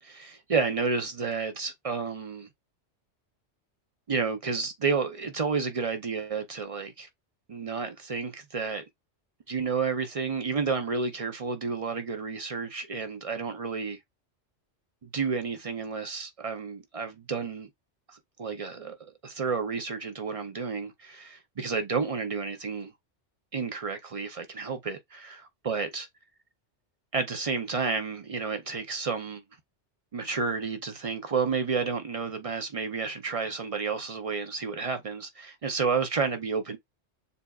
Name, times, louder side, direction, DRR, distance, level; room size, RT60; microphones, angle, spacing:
voice 1, 0.1-2.5 4.1-7.1 7.5-8.8 9.5-14.0 15.0-17.7 18.1-22.9 23.5-26.1 27.1-29.4 30.1-36.8, right 5 dB, 45° right, 0.5 m, -31 dB
6.8 x 2.4 x 2.3 m
omnidirectional pair, 1.2 m